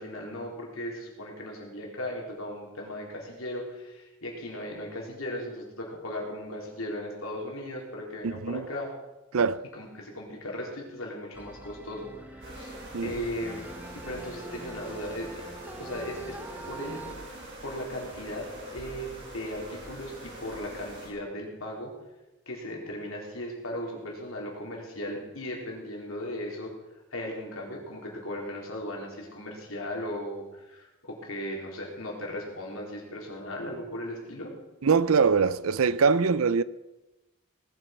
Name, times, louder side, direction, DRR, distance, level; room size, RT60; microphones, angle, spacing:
voice 1, 0.0-8.9 9.7-12.7 13.0-13.7 14.0-15.5 15.8-16.4 16.7-17.0 17.3-17.4 17.6-21.9 22.5-26.7 27.1-34.5, left 1 dB, 80° left, 4.1 m, -37 dB
voice 2, 8.2-8.7 9.3-9.6 12.9-13.1 34.8-36.6, right 5 dB, 85° right, 0.6 m, -23 dB
sound 1, 11.3-17.1, right 1 dB, 10° right, 0.7 m, -44 dB
sound 2, 12.4-21.1, right 1 dB, 55° right, 5.7 m, -44 dB
19.0 x 8.7 x 6.0 m
head